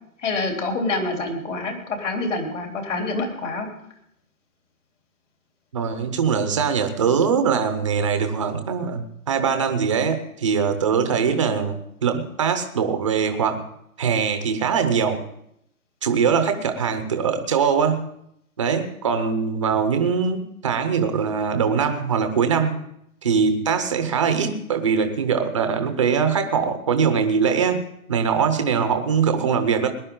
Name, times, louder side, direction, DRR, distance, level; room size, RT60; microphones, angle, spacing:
voice 1, 0.2-3.7, left 3 dB, 55° left, 2 dB, 3.5 m, -26 dB
voice 2, 5.7-13.7 14.0-15.2 16.0-18.1 18.6-22.8 23.2-29.9, right 6 dB, 20° right, 8 dB, 0.7 m, -22 dB
19.5 x 11.0 x 3.8 m, 0.73 s
hypercardioid pair, 165°, 44 cm